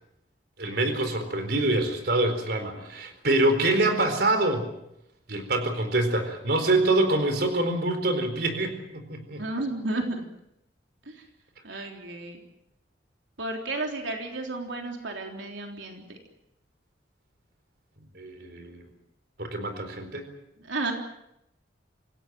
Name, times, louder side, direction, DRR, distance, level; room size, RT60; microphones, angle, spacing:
voice 1, 0.6-4.7 5.3-9.4 11.7-11.9 18.1-18.8 19.4-20.3, right 2 dB, 55° right, 7 dB, 4.3 m, -25 dB
voice 2, 9.4-10.3 11.1-11.2 11.6-12.4 13.4-16.2 20.6-20.9, right 2 dB, 90° right, 2 dB, 3.7 m, -32 dB
27.5 x 16.5 x 9.1 m, 0.83 s
head